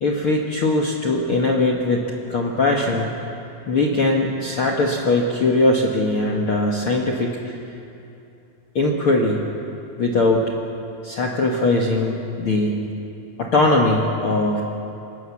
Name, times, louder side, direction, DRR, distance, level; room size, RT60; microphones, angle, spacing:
voice 1, 0.0-3.1 3.7-7.5 8.7-9.5 10.0-10.4 11.0-12.9 13.4-14.6, left 2 dB, 60° left, 1 dB, 1.4 m, -20 dB
25.5 x 18.0 x 7.2 m, 2.7 s
omnidirectional pair, 4.7 m